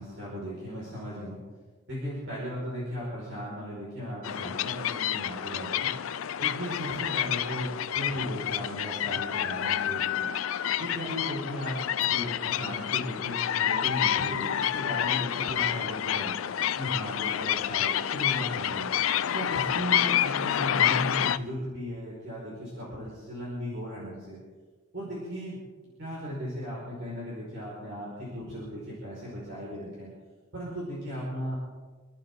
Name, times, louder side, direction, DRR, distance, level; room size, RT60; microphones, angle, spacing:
voice 1, 0.0-1.4 1.9-5.9 6.4-10.3 10.8-16.3 16.8-18.9 19.3-24.4 24.9-30.1 30.5-31.5, equal, 60° right, -6 dB, 5.2 m, -36 dB
sound 1, 4.2-21.4, left 10 dB, 80° left, 0.4 m, -28 dB
27.0 x 12.0 x 3.8 m, 1.4 s
head